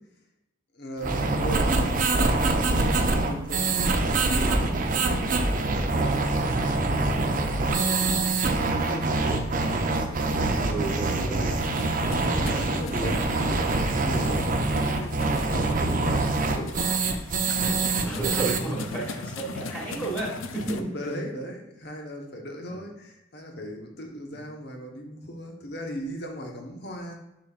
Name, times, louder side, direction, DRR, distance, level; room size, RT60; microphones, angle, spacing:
voice 1, 0.7-5.8 6.2-8.1 8.5-10.6 10.9-11.5 12.1-16.7 17.4-18.6 20.7-27.1, equal, 55° left, 2 dB, 1.1 m, -38 dB
sound 1, 1.0-18.6, right 3 dB, 40° right, 0.6 m, -25 dB
voice 2, 10.6-11.5 14.6-14.9 15.6-15.7 18.0-20.9 22.7-22.9 24.3-24.4, right 3 dB, 5° left, -5 dB, 1.6 m, -33 dB
sound 2, 11.6-20.8, left 4 dB, 75° left, 0.5 m, -40 dB
7.2 x 6.0 x 2.5 m, 0.90 s
head